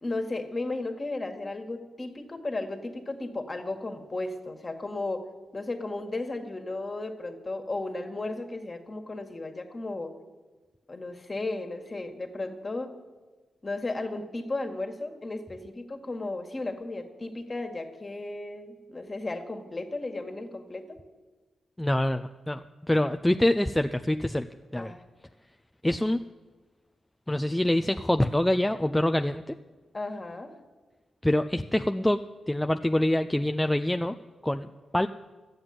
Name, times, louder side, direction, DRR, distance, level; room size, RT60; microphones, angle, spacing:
voice 1, 0.0-5.3 5.5-10.1 10.9-12.9 13.6-21.0 24.8-25.0 29.9-30.5, left 2 dB, 35° left, 5 dB, 1.9 m, -34 dB
voice 2, 21.8-24.5 24.7-24.9 25.8-26.2 27.3-29.5 31.2-32.2 32.5-34.2 34.4-34.7 34.9-35.1, left 1 dB, 10° left, 8 dB, 0.5 m, -25 dB
12.5 x 7.9 x 9.6 m, 1.3 s
supercardioid pair, 50°, 0 cm